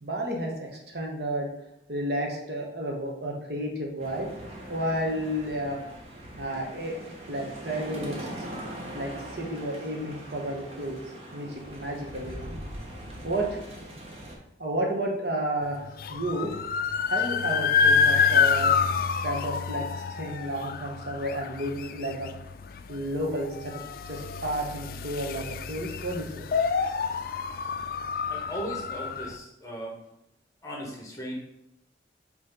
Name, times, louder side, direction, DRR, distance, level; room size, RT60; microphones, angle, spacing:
voice 1, 0.0-1.5 1.9-4.3 4.7-5.8 6.4-7.0 7.3-8.5 8.9-11.0 11.3-12.5 13.2-13.6 14.6-16.5 17.1-18.7 19.2-19.8 20.2-22.3 22.9-23.8 24.0-26.5, right 1 dB, 60° right, 0 dB, 1.3 m, -31 dB
sound 1, 4.0-14.4, right 1 dB, 35° right, 1.1 m, -41 dB
sound 2, 15.7-29.4, left 6 dB, 55° left, 0.3 m, -27 dB
voice 2, 28.3-30.0 30.6-31.3, right 1 dB, 20° left, -2 dB, 1.3 m, -37 dB
5.6 x 3.3 x 5.4 m, 0.84 s
head